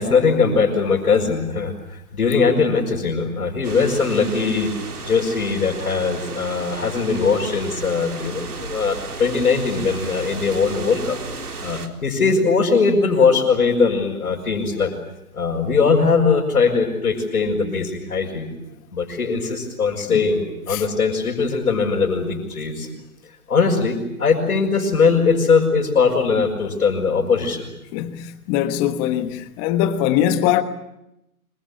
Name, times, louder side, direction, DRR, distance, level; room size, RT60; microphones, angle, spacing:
voice 1, 0.0-4.7 5.0-11.2 11.6-14.9 15.3-18.5 18.9-22.9 23.5-27.7, left 5 dB, 75° left, 6.2 m, -20 dB
sound 1, 3.6-11.9, right 4 dB, 90° right, 4.0 m, -34 dB
voice 2, 27.9-30.6, left 11 dB, 20° left, 1.3 m, -21 dB
26.0 x 24.5 x 8.6 m
hypercardioid pair, 150°, 44 cm